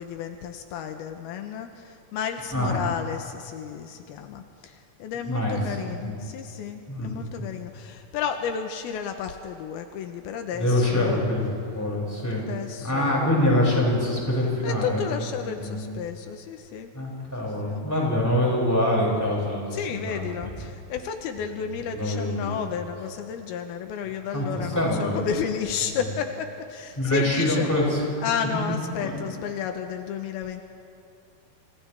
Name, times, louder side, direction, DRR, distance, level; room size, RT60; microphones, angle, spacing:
voice 1, 0.0-11.2 12.4-13.4 14.6-16.9 17.4-17.9 19.7-27.7 28.2-30.6, left 7 dB, 85° left, 5 dB, 2.9 m, -32 dB
voice 2, 5.2-6.1 6.9-7.3 10.5-12.5 12.8-15.2 15.4-15.9 16.9-20.6 21.4-21.5 21.9-22.6 24.3-25.3 25.8-26.0 27.0-28.0 28.5-28.6 29.0-29.2, left 1 dB, 5° left, -5 dB, 6.4 m, -25 dB
30.0 x 27.5 x 3.5 m, 2.6 s
omnidirectional pair, 4.4 m